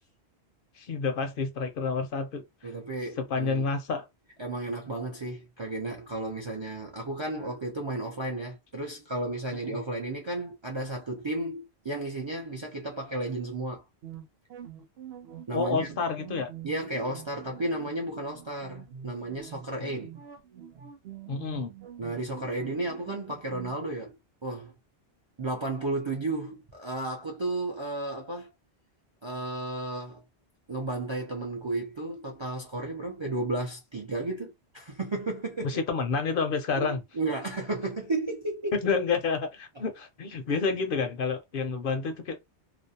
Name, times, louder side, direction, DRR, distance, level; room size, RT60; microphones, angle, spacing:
voice 1, 0.8-2.7 3.2-4.1 15.5-16.5 19.8-19.9 21.3-21.7 35.6-37.0 38.8-42.4, left 4 dB, 60° left, 0.6 m, -29 dB
voice 2, 2.6-3.7 4.4-13.8 15.5-15.9 16.6-20.1 22.0-24.2 24.4-24.7 25.4-28.5 29.2-30.2 30.7-35.8 36.8-38.8 40.5-40.6, right 2 dB, 40° right, 0.4 m, -33 dB
sound 1, 14.0-23.8, right 9 dB, 65° right, 0.8 m, -45 dB
2.5 x 2.0 x 2.7 m
omnidirectional pair, 1.1 m